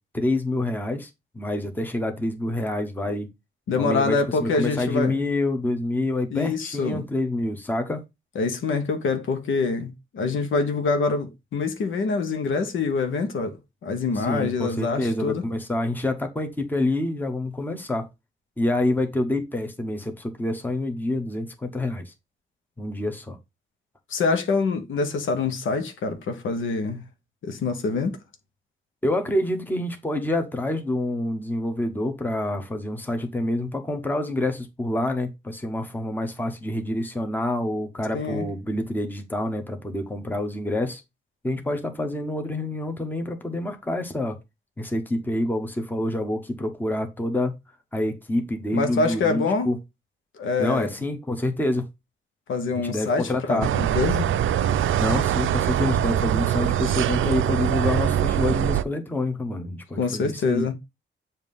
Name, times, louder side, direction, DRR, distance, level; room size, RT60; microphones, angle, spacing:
voice 1, 0.1-3.3 3.8-8.0 14.1-18.0 18.6-22.1 22.8-23.4 29.0-41.0 41.4-44.4 44.8-47.6 47.9-49.8 50.6-51.9 52.7-53.7 55.0-60.6, left 1 dB, 10° left, 1.0 m, -27 dB
voice 2, 3.7-5.2 6.3-7.0 8.3-15.4 24.1-27.0 27.4-28.2 38.1-38.5 48.7-49.7 50.4-50.9 52.5-54.3 60.0-60.7, left 4 dB, 75° left, 1.1 m, -25 dB
sound 1, 53.6-58.8, right 10 dB, 85° right, 0.4 m, -23 dB
7.4 x 2.8 x 5.3 m
wide cardioid pair, 140°, 20 cm